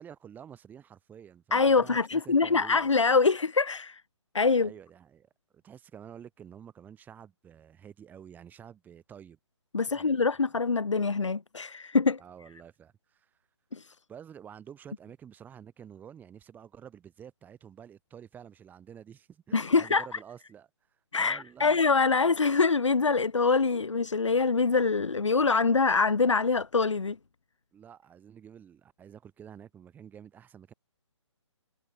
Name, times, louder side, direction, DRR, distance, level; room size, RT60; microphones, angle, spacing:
voice 1, 0.0-2.9 4.6-9.4 9.9-10.2 12.2-13.3 14.1-20.7 21.2-21.8 27.7-30.7, right 8 dB, 10° right, 6.4 m, -49 dB
voice 2, 1.5-4.0 4.3-4.7 9.7-12.2 13.7-13.9 19.5-20.2 21.1-27.2, left 4 dB, 75° left, 1.4 m, -24 dB
figure-of-eight pair, 140°, 16 cm